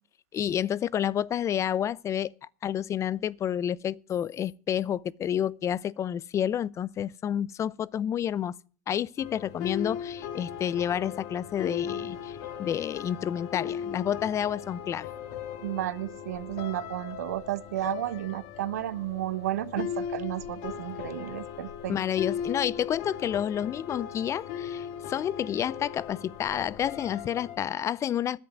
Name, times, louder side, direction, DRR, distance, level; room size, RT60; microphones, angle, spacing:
voice 1, 0.3-8.5 8.9-15.1 21.9-28.4, left 9 dB, 35° left, 0.6 m, -30 dB
sound 1, 9.2-27.6, left 8 dB, 70° left, 1.7 m, -38 dB
voice 2, 15.6-22.0, right 14 dB, 85° right, 0.8 m, -32 dB
10.5 x 7.6 x 9.2 m
hypercardioid pair, 95°, 8 cm